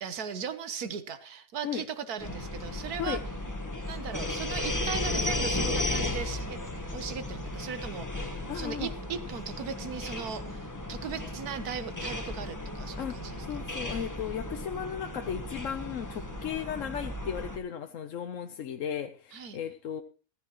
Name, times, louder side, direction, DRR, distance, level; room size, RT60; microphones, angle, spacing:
voice 1, 0.0-3.2 3.9-6.6 6.9-13.6 19.3-19.6, right 7 dB, 75° right, 11 dB, 1.6 m, -38 dB
sound 1, 2.2-17.6, left 2 dB, 15° left, 1.2 m, -35 dB
voice 2, 8.5-8.9 13.0-13.1 13.5-20.0, left 8 dB, 60° left, 7 dB, 1.1 m, -35 dB
16.0 x 14.0 x 3.0 m, 0.37 s
omnidirectional pair, 1.6 m